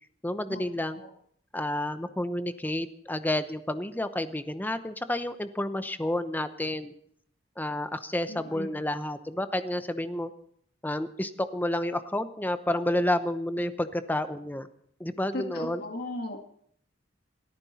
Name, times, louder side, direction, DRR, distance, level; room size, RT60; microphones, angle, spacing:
voice 1, 0.2-1.0 1.5-6.9 7.6-10.3 10.8-14.7 15.0-15.8, left 1 dB, 10° left, 10 dB, 0.8 m, -30 dB
voice 2, 8.3-8.7 15.3-16.4, left 2 dB, 55° left, 4 dB, 1.9 m, -36 dB
28.5 x 9.7 x 4.2 m, 0.65 s
head